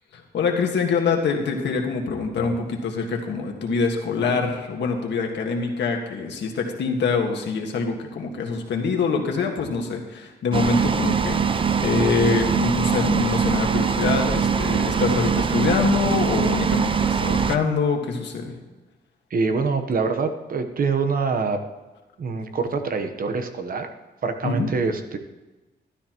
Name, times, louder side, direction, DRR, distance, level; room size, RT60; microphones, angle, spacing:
voice 1, 0.1-18.5 24.4-24.7, left 4 dB, 85° left, 2 dB, 1.7 m, -24 dB
sound 1, 10.5-17.6, right 6 dB, 30° right, 0.5 m, -22 dB
voice 2, 19.3-21.6 22.2-23.9 24.2-25.2, right 4 dB, 55° right, 7 dB, 1.1 m, -25 dB
12.5 x 12.5 x 3.0 m, 1.1 s
wide cardioid pair, 135°, 18 cm